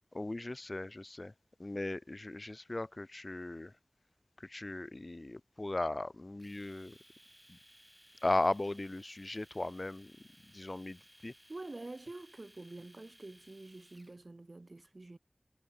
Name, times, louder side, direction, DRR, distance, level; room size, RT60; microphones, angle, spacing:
voice 1, 0.1-1.3 1.6-3.7 4.4-7.0 7.5-7.6 8.2-10.1 10.5-11.3, left 2 dB, 50° left, 0.5 m, -37 dB
Domestic sounds home sounds, 6.4-14.2, equal, 5° right, 5.2 m, -61 dB
voice 2, 11.5-15.2, right 2 dB, 65° right, 3.0 m, -47 dB
wide cardioid pair, 40°, 0 cm